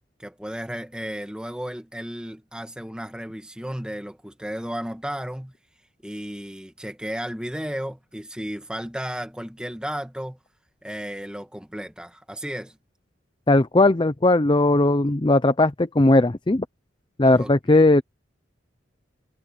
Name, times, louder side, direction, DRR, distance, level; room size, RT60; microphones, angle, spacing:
voice 1, 0.2-5.5 6.0-10.4 10.8-12.8 17.4-17.8, equal, 5° right, 1.7 m, -34 dB
voice 2, 13.5-16.6 17.2-18.0, left 2 dB, 25° left, 0.6 m, -18 dB
head